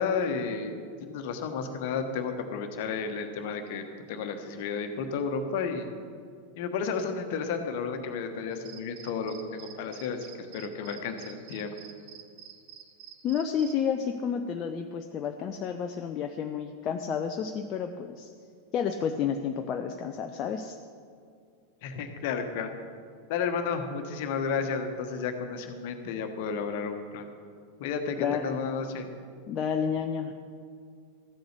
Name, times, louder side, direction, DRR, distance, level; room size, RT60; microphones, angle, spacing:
voice 1, 0.0-5.9 6.6-10.2 10.5-11.7 21.8-22.7 23.3-27.3 27.8-29.0, left 5 dB, 50° left, 6 dB, 1.3 m, -32 dB
sound 1, 8.5-13.7, right 10 dB, 45° right, 0.9 m, -49 dB
voice 2, 13.2-18.3 18.7-20.8 28.2-28.6 29.5-30.3, left 7 dB, 35° left, 5 dB, 0.6 m, -30 dB
13.5 x 7.9 x 6.7 m, 2.2 s
figure-of-eight pair, 90°, 0 cm